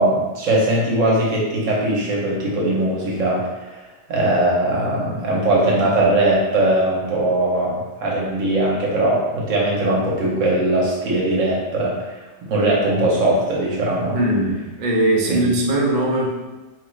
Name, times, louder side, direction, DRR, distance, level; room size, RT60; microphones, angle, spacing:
voice 1, 0.0-3.7 4.1-11.9 12.4-14.2 15.3-15.4, right 1 dB, 75° right, -4 dB, 1.2 m, -20 dB
voice 2, 14.1-16.5, right 1 dB, 55° right, -2 dB, 0.5 m, -20 dB
3.2 x 2.4 x 3.1 m, 1.2 s
omnidirectional pair, 1.4 m